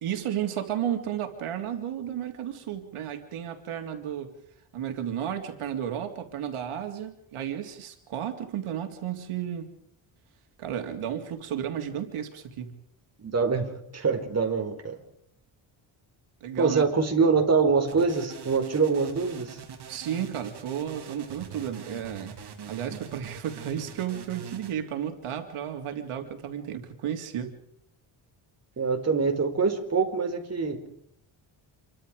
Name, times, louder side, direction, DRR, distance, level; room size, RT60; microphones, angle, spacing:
voice 1, 0.0-4.3 4.7-9.7 10.6-12.7 16.4-16.8 19.9-22.4 22.7-27.5, right 9 dB, 80° right, 5 dB, 3.3 m, -33 dB
voice 2, 13.2-15.0 16.6-19.6 28.8-30.8, right 5 dB, 30° right, 5 dB, 4.4 m, -24 dB
sound 1, 17.9-24.7, right 7 dB, 50° right, 3.3 m, -43 dB
28.0 x 24.0 x 5.1 m, 0.70 s
cardioid pair, 150°, 49 cm